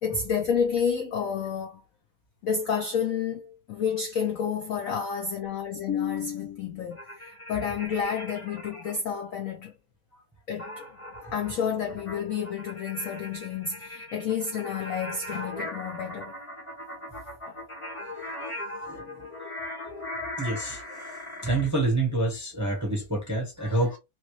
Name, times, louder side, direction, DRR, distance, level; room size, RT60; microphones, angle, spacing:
voice 1, 0.0-1.8 2.4-9.7 10.5-10.9 11.3-16.4 17.5-17.6, left 7 dB, 75° left, 0.7 m, -30 dB
sound 1, 6.9-9.0 10.6-21.7, left 1 dB, 20° left, 1.1 m, -39 dB
voice 2, 20.4-20.8 21.4-24.0, right 2 dB, 15° right, 0.5 m, -27 dB
3.0 x 2.6 x 3.0 m
omnidirectional pair, 2.2 m